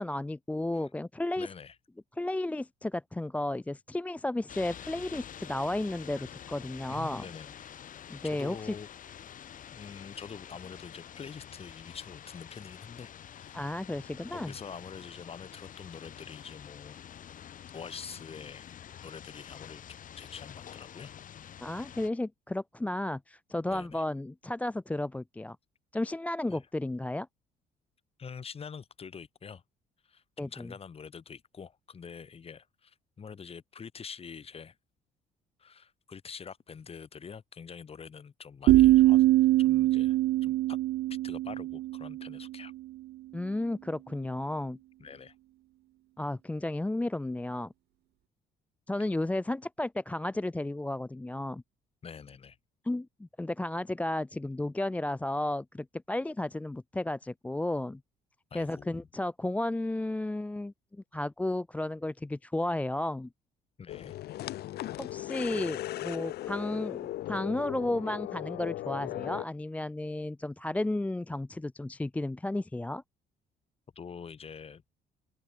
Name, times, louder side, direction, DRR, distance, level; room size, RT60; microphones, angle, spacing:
voice 1, 0.0-1.5 2.2-7.3 8.1-8.7 13.5-14.5 21.6-25.6 25.9-27.3 30.4-30.7 43.3-44.8 46.2-47.7 48.9-51.6 52.8-58.0 58.5-60.7 61.1-63.3 65.0-73.0, left 1 dB, 10° left, 0.5 m, -33 dB
voice 2, 1.4-1.8 6.9-7.5 8.2-8.9 9.7-13.8 14.3-17.0 17.7-19.8 20.2-21.1 23.7-24.0 26.5-26.6 28.2-29.6 30.0-34.8 35.6-40.8 41.2-42.7 45.0-45.3 52.0-52.6 58.5-59.1 63.8-64.2 73.9-74.8, left 6 dB, 35° left, 7.8 m, -45 dB
sound 1, 4.5-22.1, left 9 dB, 50° left, 4.1 m, -48 dB
sound 2, 38.7-42.5, right 16 dB, 70° right, 0.6 m, -23 dB
sound 3, 63.9-69.4, left 15 dB, 70° left, 1.9 m, -37 dB
open air
cardioid pair, 110°, 17 cm